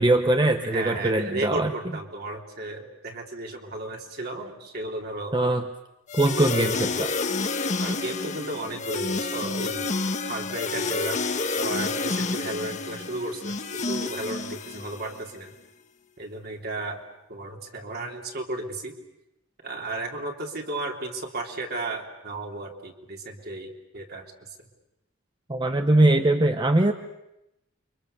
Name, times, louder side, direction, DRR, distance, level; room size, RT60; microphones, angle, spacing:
voice 1, 0.0-1.7 5.3-5.7 6.2-7.1 25.5-26.9, right 2 dB, 25° right, 6 dB, 0.9 m, -21 dB
voice 2, 0.6-5.4 7.8-9.9 10.3-11.2 11.6-15.5 16.2-17.0 17.3-19.0 19.6-24.7, right 2 dB, 50° right, 2 dB, 3.4 m, -34 dB
sound 1, 6.1-15.2, left 3 dB, 35° left, 1.3 m, -29 dB
29.5 x 24.5 x 6.8 m, 0.90 s
head